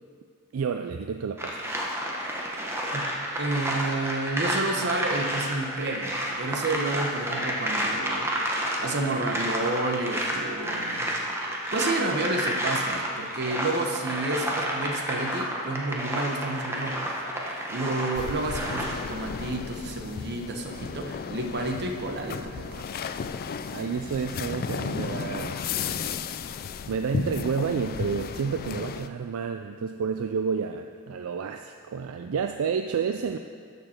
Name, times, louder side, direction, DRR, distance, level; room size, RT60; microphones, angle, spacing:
voice 1, 0.5-1.7 23.7-25.7 26.9-33.4, right 6 dB, 70° right, 6 dB, 0.4 m, -30 dB
sound 1, 1.4-18.9, equal, 10° right, 1.1 m, -30 dB
voice 2, 3.4-11.1 11.7-17.1 17.7-22.9, right 2 dB, 50° right, 3 dB, 1.1 m, -30 dB
sound 2, 18.1-29.1, left 6 dB, 45° left, 0.3 m, -34 dB
13.0 x 6.7 x 4.4 m, 2.2 s
head